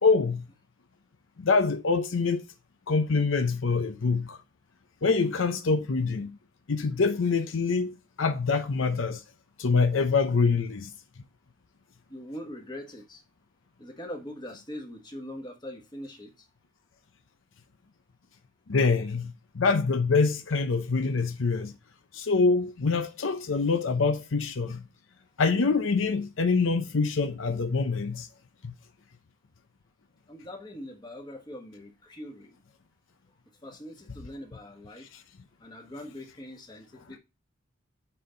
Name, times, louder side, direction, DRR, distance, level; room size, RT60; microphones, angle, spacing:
voice 1, 0.0-0.5 1.4-2.4 2.9-4.4 5.0-6.4 6.7-9.2 9.6-10.9 18.7-21.7 22.1-24.9 25.4-28.3 28.6-28.7 35.1-35.2, left 4 dB, 80° left, 0.7 m, -25 dB
voice 2, 12.1-13.2 13.8-16.5 30.3-32.6 33.6-35.1 35.6-37.2, left 1 dB, 20° left, 1.4 m, -42 dB
7.7 x 4.4 x 3.8 m
head